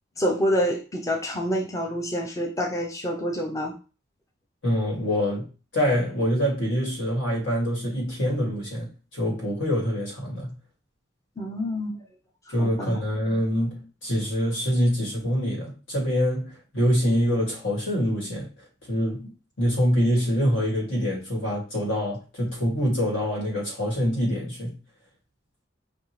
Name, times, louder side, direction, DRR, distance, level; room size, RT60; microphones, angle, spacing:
voice 1, 0.2-3.8 11.4-12.0 12.6-13.0, equal, 15° left, 0.5 m, -27 dB
voice 2, 4.6-5.5 5.7-10.5 12.5-18.5 18.9-19.3 19.6-24.7, equal, 80° left, 2.2 m, -25 dB
5.2 x 2.6 x 3.1 m
head